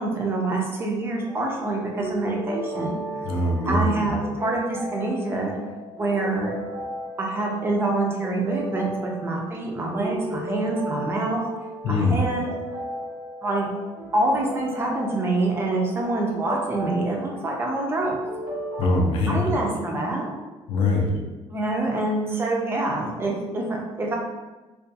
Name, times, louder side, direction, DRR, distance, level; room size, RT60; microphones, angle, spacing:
voice 1, 0.0-3.1 3.7-5.5 5.9-6.5 7.2-11.4 11.9-12.5 13.4-13.7 14.1-18.2 19.3-20.3 21.5-24.2, right 2 dB, 20° right, -1 dB, 0.3 m, -26 dB
sound 1, 1.3-18.8, right 1 dB, 80° right, 0.6 m, -35 dB
voice 2, 3.2-4.1 11.8-12.2 18.8-19.5 20.7-21.1, left 2 dB, 55° left, 1 dB, 0.4 m, -22 dB
2.3 x 2.2 x 2.7 m, 1.2 s
cardioid pair, 165°, 11 cm